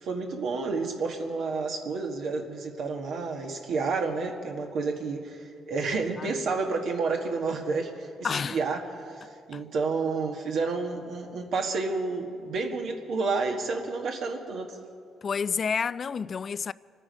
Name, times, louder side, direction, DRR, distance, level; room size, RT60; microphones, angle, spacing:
voice 1, 0.0-8.1 8.5-14.8, right 4 dB, 75° right, 1.5 m, -30 dB
voice 2, 8.2-8.6 9.5-9.6 15.2-16.7, left 6 dB, 45° left, 0.3 m, -29 dB
25.0 x 9.9 x 5.2 m
cardioid pair, 90°, 0 cm